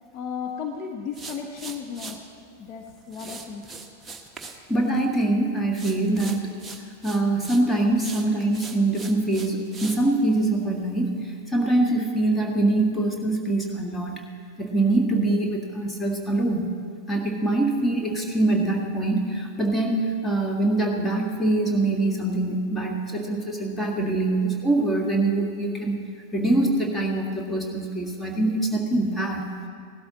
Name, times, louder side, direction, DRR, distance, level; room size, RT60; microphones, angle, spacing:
voice 1, 0.1-2.2 2.6-3.6, left 6 dB, 35° left, 2 dB, 0.9 m, -34 dB
sound 1, 1.1-2.2 3.1-4.6 4.9-5.3 5.7-7.6 8.0-10.0, right 4 dB, 10° right, 1.0 m, -40 dB
voice 2, 4.7-6.5 7.0-14.2 14.6-16.7 17.1-26.0 26.3-29.4, right 2 dB, 10° left, 0 dB, 1.7 m, -24 dB
17.5 x 12.0 x 4.0 m, 2.2 s
figure-of-eight pair, 90°, 0 cm